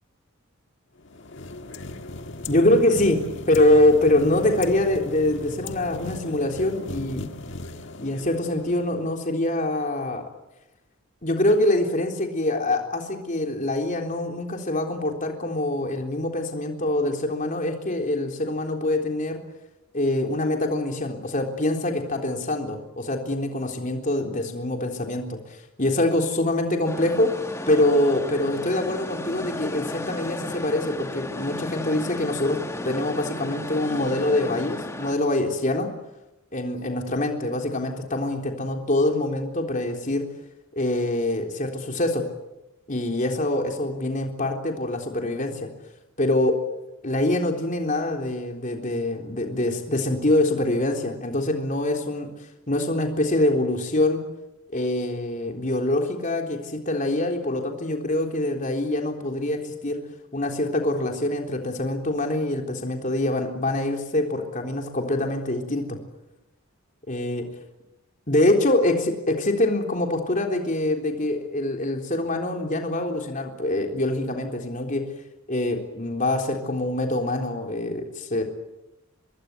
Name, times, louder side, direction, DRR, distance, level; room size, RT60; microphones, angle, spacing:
sound 1, 1.0-9.3, left 2 dB, 60° left, 1.7 m, -38 dB
voice 1, 2.5-3.2 3.5-7.3 8.0-10.2 11.2-19.4 19.9-25.4 25.8-27.3 27.7-32.6 32.8-35.9 36.5-40.2 40.7-42.2 42.9-45.7 46.2-46.6 47.0-52.3 52.7-54.2 54.7-60.0 60.3-66.0 67.1-67.5 68.3-75.0 75.5-78.4, left 1 dB, 40° left, 3 dB, 3.7 m, -24 dB
sound 2, 26.8-35.1, left 1 dB, 15° left, 1.5 m, -34 dB
25.0 x 22.0 x 9.2 m, 0.96 s
head